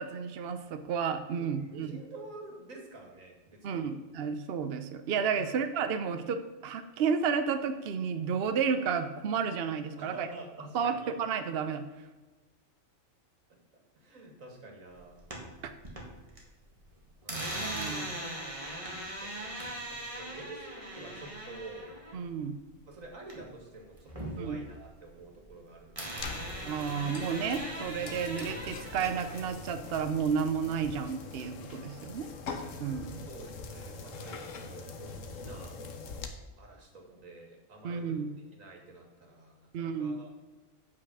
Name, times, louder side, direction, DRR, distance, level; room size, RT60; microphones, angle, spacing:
voice 1, 0.0-1.9 3.6-10.3 10.7-11.8 15.6-15.7 17.3-17.5 17.7-18.1 22.1-22.5 24.4-24.6 26.6-32.3 32.8-33.2 37.8-38.3 39.7-40.1, right 6 dB, 55° right, 9 dB, 0.8 m, -32 dB
voice 2, 1.4-3.9 5.4-5.5 10.0-11.1 13.9-15.2 17.2-18.3 19.2-19.6 19.9-21.9 22.9-26.6 33.3-35.8 36.6-40.3, right 2 dB, 80° right, 1 dB, 2.3 m, -49 dB
sound 1, 15.0-16.4 16.7-23.6 23.9-25.6 26.0-29.5, right 1 dB, 25° right, 2.0 m, -40 dB
sound 2, 26.2-36.3, left 4 dB, 75° left, 1.3 m, -43 dB
8.8 x 5.8 x 6.0 m, 1.3 s
omnidirectional pair, 1.4 m